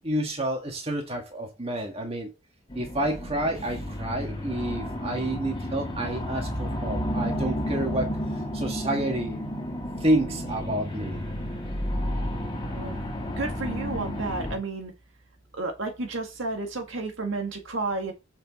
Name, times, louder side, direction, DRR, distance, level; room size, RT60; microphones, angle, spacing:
voice 1, 0.0-2.3 2.7-8.2 8.5-9.4 10.0-11.2, right 1 dB, 30° right, 1.9 m, -29 dB
sound 1, 2.7-14.6, equal, 20° left, 2.4 m, -32 dB
voice 2, 13.4-14.9 15.5-18.1, right 3 dB, 65° right, 1.7 m, -31 dB
7.2 x 6.1 x 4.2 m
head